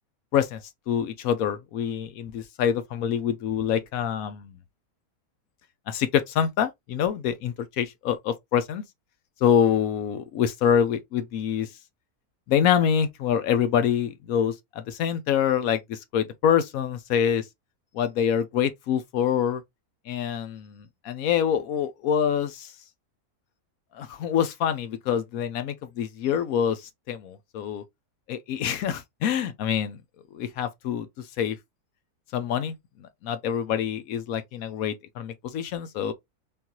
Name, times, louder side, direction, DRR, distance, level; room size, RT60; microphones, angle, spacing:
voice 1, 0.9-4.6 5.9-8.8 9.4-11.7 12.5-17.5 17.9-19.6 20.1-22.7 23.9-27.8 28.3-30.0 30.3-31.1 31.4-31.6 32.3-36.1, left 8 dB, 75° left, 1.0 m, -26 dB
3.7 x 2.5 x 2.8 m
omnidirectional pair, 1.6 m